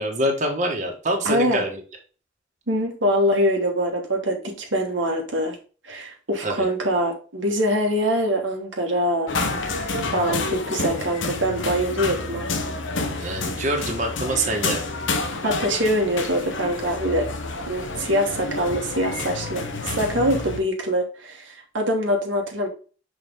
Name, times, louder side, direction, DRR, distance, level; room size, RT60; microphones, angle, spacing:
voice 1, 0.0-1.8 6.4-6.7 13.2-14.9, right 1 dB, 40° right, 1 dB, 1.6 m, -25 dB
voice 2, 1.2-1.6 2.7-5.6 5.8-9.3 9.6-12.5 15.4-17.3 17.7-22.7, equal, 70° right, 1 dB, 1.4 m, -24 dB
sound 1, 9.3-20.6, left 3 dB, 75° left, 1.0 m, -29 dB
6.2 x 4.7 x 3.5 m, 0.37 s
head